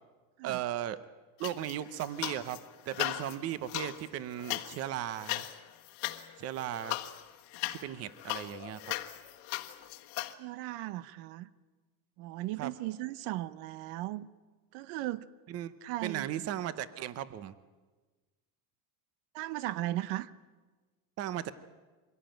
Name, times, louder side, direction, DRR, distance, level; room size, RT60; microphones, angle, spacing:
voice 1, 0.4-1.0 1.4-2.6 2.9-5.5 6.4-7.0 7.7-8.9 12.6-12.7 15.5-15.7 16.0-17.5 21.2-21.5, right 11 dB, 35° right, 15 dB, 0.8 m, -36 dB
sound 1, 1.4-2.6 2.9-10.3, left 17 dB, 80° left, 1.5 m, -38 dB
voice 2, 10.4-11.5 12.2-14.3 14.7-15.3 15.8-16.4 19.3-20.3, right 16 dB, 75° right, 17 dB, 0.9 m, -37 dB
24.0 x 16.5 x 9.0 m, 1.3 s
cardioid pair, 170°, 43 cm